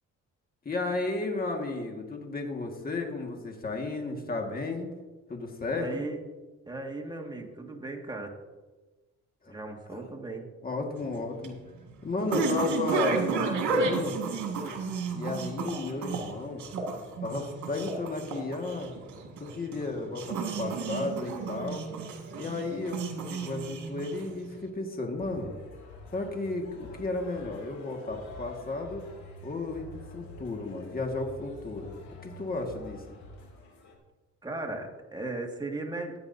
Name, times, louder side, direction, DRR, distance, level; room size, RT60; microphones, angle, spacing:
voice 1, 0.7-4.9 5.3-6.1 9.4-9.5 10.6-11.6 12.0-14.2 15.1-16.6 17.2-18.9 19.4-21.9 22.3-25.5 26.1-29.0 29.4-33.2, left 3 dB, 30° left, 2 dB, 1.9 m, -33 dB
voice 2, 5.7-6.2 6.7-8.3 9.5-10.5 34.4-36.1, right 2 dB, 15° right, 1 dB, 2.0 m, -36 dB
sound 1, 11.0-24.5, right 4 dB, 75° right, 2.1 m, -32 dB
sound 2, 25.2-34.0, left 2 dB, 70° left, 2.7 m, -47 dB
16.0 x 9.8 x 2.8 m, 1.2 s
cardioid pair, 90°, 30 cm